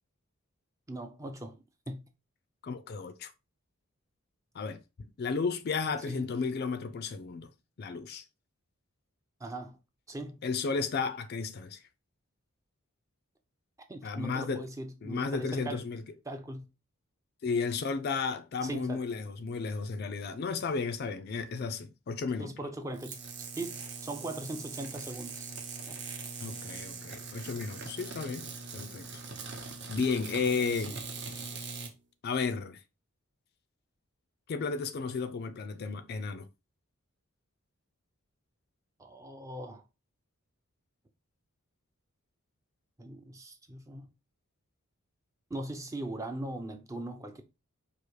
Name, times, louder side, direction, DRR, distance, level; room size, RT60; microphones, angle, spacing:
voice 1, 0.9-1.6 1.9-2.0 6.1-6.3 9.4-9.8 10.1-10.4 13.9-15.8 16.3-16.7 18.6-19.1 22.4-23.2 23.6-25.5 25.9-26.0 30.8-31.0 31.3-31.5 39.0-39.8 43.0-44.1 45.5-47.4, right 1 dB, 15° right, 0.4 m, -40 dB
voice 2, 2.6-3.3 4.5-7.5 7.8-8.2 10.4-11.8 14.0-14.7 15.0-16.0 17.4-22.5 26.4-29.1 29.9-31.0 32.2-32.8 34.5-36.5, left 4 dB, 45° left, 0.4 m, -33 dB
sound 1, 22.9-31.9, right 4 dB, 55° right, 0.8 m, -42 dB
4.9 x 2.5 x 3.1 m
head